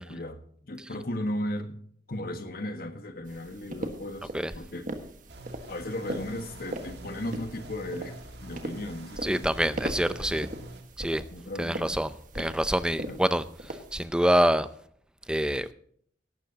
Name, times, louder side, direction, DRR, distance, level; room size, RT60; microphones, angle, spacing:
voice 1, 0.0-1.8 2.1-4.9 5.7-9.8 10.1-10.5 11.3-11.9 13.1-13.2, left 1 dB, 55° left, 1.5 m, -36 dB
sound 1, 3.3-14.1, right 1 dB, 50° right, 1.6 m, -40 dB
sound 2, 5.3-10.8, right 1 dB, 65° right, 2.0 m, -45 dB
voice 2, 9.2-10.5 11.0-11.2 11.6-14.7 15.3-15.7, right 1 dB, 5° right, 0.6 m, -26 dB
17.5 x 12.0 x 2.9 m
head